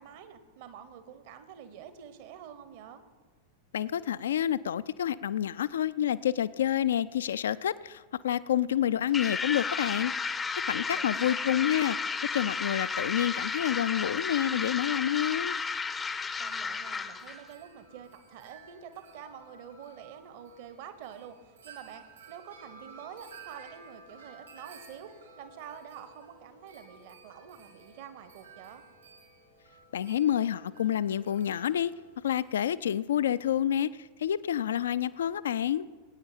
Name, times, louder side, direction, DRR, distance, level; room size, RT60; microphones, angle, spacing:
voice 1, 0.0-3.0 10.9-11.8 16.4-21.4 21.6-28.8, right 8 dB, 50° right, 11 dB, 1.1 m, -47 dB
voice 2, 3.7-10.1 10.6-12.0 12.3-15.6 29.9-31.9 32.2-35.9, left 10 dB, 65° left, 17 dB, 0.4 m, -28 dB
sound 1, 9.1-17.4, left 5 dB, 15° left, 0.6 m, -33 dB
Wind chime, 15.9-32.8, right 4 dB, 70° right, 2.6 m, -54 dB
20.0 x 9.3 x 4.4 m, 1.4 s
figure-of-eight pair, 90°, 0 cm